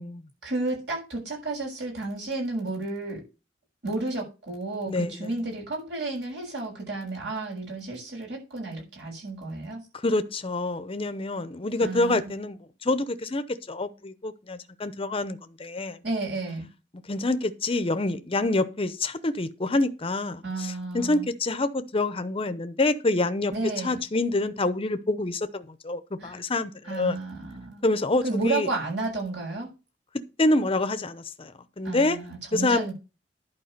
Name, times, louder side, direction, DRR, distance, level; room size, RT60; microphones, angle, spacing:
voice 1, 0.4-3.2 3.8-9.8 11.8-12.3 16.0-16.7 20.4-21.3 23.5-24.0 26.2-26.4 26.9-27.9 28.2-29.7 31.8-32.9, right 2 dB, 70° right, 6.5 m, -32 dB
voice 2, 4.9-5.3 9.9-16.0 17.1-23.5 23.8-27.2 27.8-28.7 30.4-32.2 32.5-32.9, left 2 dB, 30° left, 0.8 m, -27 dB
11.0 x 4.8 x 6.6 m
head